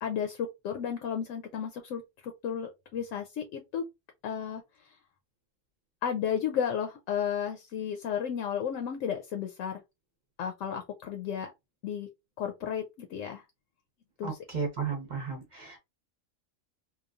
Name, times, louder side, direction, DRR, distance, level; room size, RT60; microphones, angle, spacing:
voice 1, 0.0-3.8 4.2-4.6 6.0-9.8 10.4-11.5 11.8-12.1 12.4-13.4 14.2-14.4, left 8 dB, 75° left, 0.9 m, -33 dB
voice 2, 14.2-15.8, right 5 dB, 40° right, 0.8 m, -34 dB
3.0 x 2.2 x 2.4 m
omnidirectional pair, 1.3 m